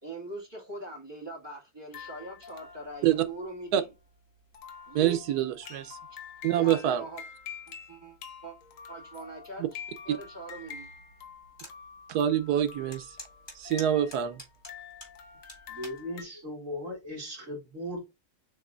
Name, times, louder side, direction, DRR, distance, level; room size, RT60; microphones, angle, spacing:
voice 1, 0.0-3.9 4.9-5.2 6.1-6.2 6.5-7.2 7.7-8.6 8.9-9.8 10.0-10.9, right 1 dB, 15° right, 1.8 m, -42 dB
sound 1, 1.9-16.2, left 7 dB, 60° left, 1.1 m, -47 dB
voice 2, 4.9-6.0 6.4-7.0 9.6-9.7 10.1-10.2 12.1-13.1 13.5-14.4, right 10 dB, 85° right, 1.2 m, -26 dB
sound 2, 11.6-11.8 12.2-12.3 12.9-15.1 15.5-16.0 16.7-17.0, left 1 dB, 15° left, 1.8 m, -45 dB
voice 3, 15.7-18.1, left 1 dB, 50° right, 2.7 m, -38 dB
7.2 x 3.0 x 2.4 m
omnidirectional pair, 1.7 m